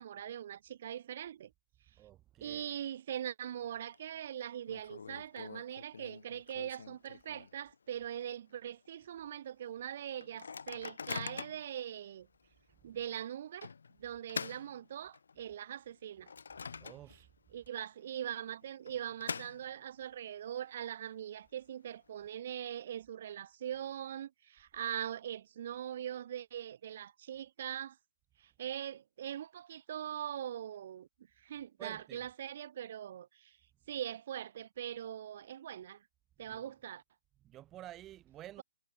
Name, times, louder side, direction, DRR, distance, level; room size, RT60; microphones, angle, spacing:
voice 1, 0.0-1.5 2.4-12.3 12.8-13.7 14.0-16.3 17.1-17.2 17.5-28.0 28.4-31.1 31.4-33.6 33.9-36.0 36.4-37.0, right 10 dB, 45° right, 1.9 m, -42 dB
voice 2, 2.0-2.7 16.8-17.2 31.8-32.2 36.5-36.7 37.4-38.6, right 13 dB, 15° right, 0.6 m, -51 dB
Microwave oven, 3.4-4.0 4.2-4.3 4.7-7.8 8.2-8.3 8.5-8.9 9.4-9.5 10.2-11.7 12.3-12.5 13.6-15.4 15.9-17.4 17.7-17.8 18.6-20.0, left 5 dB, 70° left, 1.8 m, -45 dB
hypercardioid pair, 145°, 0 cm